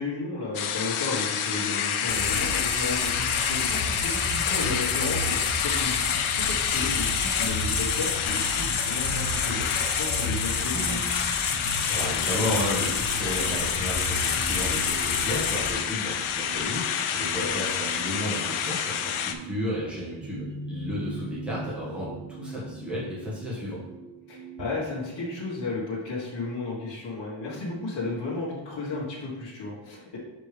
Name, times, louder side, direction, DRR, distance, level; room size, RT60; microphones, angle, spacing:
voice 1, 0.0-9.7 9.9-11.0 17.3-17.5 24.3-30.2, left 3 dB, 55° left, -8 dB, 1.5 m, -33 dB
sound 1, 0.5-19.3, left 8 dB, 75° left, 0.6 m, -29 dB
sound 2, 2.1-15.7, left 4 dB, 35° left, 0.6 m, -29 dB
sound 3, 10.7-24.7, right 3 dB, 40° right, 0.8 m, -42 dB
voice 2, 11.9-23.8, equal, ahead, -8 dB, 1.5 m, -33 dB
5.9 x 5.1 x 3.3 m, 1.1 s
wide cardioid pair, 165°, 49 cm